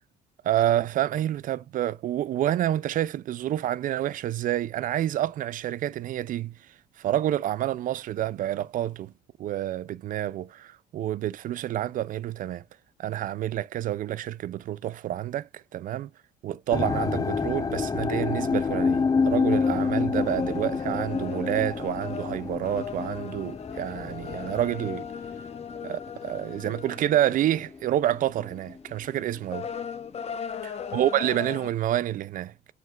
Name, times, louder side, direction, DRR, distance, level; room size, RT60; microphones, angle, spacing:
voice 1, 0.4-6.6 7.0-9.1 9.4-12.6 13.0-16.1 16.4-25.1 25.8-29.7 30.9-32.5, right 12 dB, 55° right, 0.4 m, -28 dB
sound 1, 16.7-27.9 28.1-28.8 29.4-29.5, left 5 dB, 20° left, 0.5 m, -28 dB
sound 2, 19.5-27.8 28.2-28.5 28.9-31.7, left 7 dB, 40° left, 0.9 m, -38 dB
7.7 x 5.6 x 2.4 m
cardioid pair, 110°, 17 cm